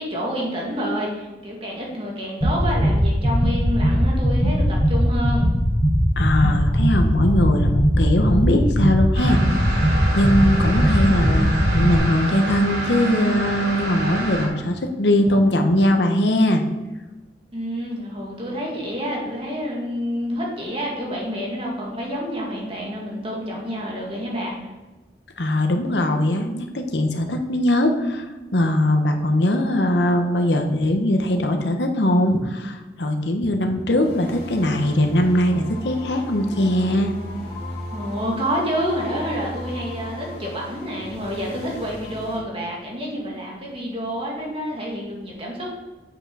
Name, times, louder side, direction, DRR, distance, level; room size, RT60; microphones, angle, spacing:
voice 1, 0.0-5.5 17.5-24.6 37.9-45.8, equal, 35° right, -3 dB, 2.2 m, -28 dB
sound 1, 2.4-12.0, equal, 10° left, 1.5 m, -19 dB
voice 2, 6.2-9.4 9.7-16.6 25.4-28.3 28.5-37.1, left 1 dB, 75° left, 5 dB, 1.0 m, -20 dB
sound 2, 9.1-14.5, right 1 dB, 60° right, 3.3 m, -27 dB
sound 3, 34.0-42.4, left 1 dB, 35° left, 2.8 m, -35 dB
8.0 x 6.0 x 5.5 m, 1.2 s
head